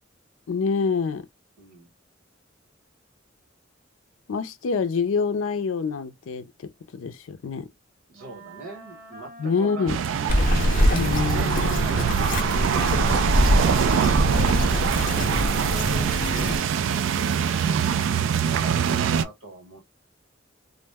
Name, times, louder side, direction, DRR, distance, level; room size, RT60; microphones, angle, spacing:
voice 1, 0.5-1.3 4.3-7.7 9.4-10.0 10.8-11.9, left 5 dB, 90° left, 0.4 m, -26 dB
voice 2, 1.6-1.9 8.1-10.5 11.3-13.3 14.9-17.6 17.8-19.8, right 3 dB, 85° right, 1.3 m, -41 dB
Wind instrument woodwind instrument, 8.1-16.4, right 2 dB, 45° right, 1.2 m, -43 dB
sound 1, 9.9-19.2, right 7 dB, 65° right, 0.3 m, -24 dB
Bird vocalization bird call bird song, 10.3-16.6, left 1 dB, 45° left, 0.7 m, -24 dB
2.5 x 2.1 x 3.3 m
head